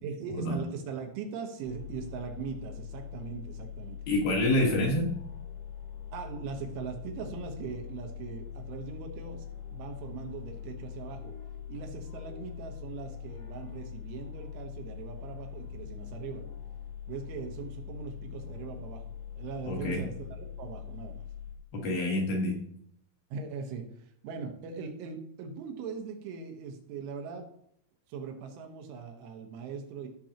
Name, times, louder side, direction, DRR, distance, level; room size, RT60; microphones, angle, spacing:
voice 1, 0.0-4.0 4.6-4.8 6.1-9.5 9.7-11.3 11.7-16.4 17.1-19.0 19.4-21.3 23.3-27.5 28.1-30.1, right 6 dB, 80° right, 3 dB, 3.6 m, -40 dB
sound 1, 1.7-21.6, left 9 dB, 75° left, 4.6 m, -42 dB
voice 2, 4.1-5.1 19.7-20.0 21.7-22.6, left 1 dB, 60° left, -1 dB, 3.1 m, -27 dB
16.0 x 6.4 x 2.9 m, 0.70 s
omnidirectional pair, 5.6 m